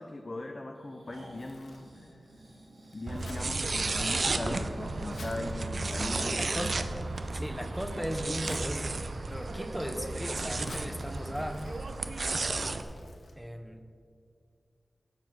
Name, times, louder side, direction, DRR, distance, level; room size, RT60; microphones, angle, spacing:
voice 1, 0.0-2.3 2.9-6.7, left 2 dB, 35° left, 4 dB, 0.5 m, -39 dB
Breathing, 0.8-12.2 12.6-12.7, right 1 dB, 75° right, 2.3 m, -51 dB
Crumpling crinkling, 1.1-13.3, left 2 dB, 70° left, 1.2 m, -53 dB
sound 1, 3.1-12.8, right 3 dB, 55° right, 0.5 m, -33 dB
voice 2, 6.3-6.9 7.3-9.0 9.3-11.6 13.4-13.9, equal, ahead, 6 dB, 0.7 m, -37 dB
8.0 x 7.0 x 5.9 m, 2.3 s
wide cardioid pair, 110°, 0 cm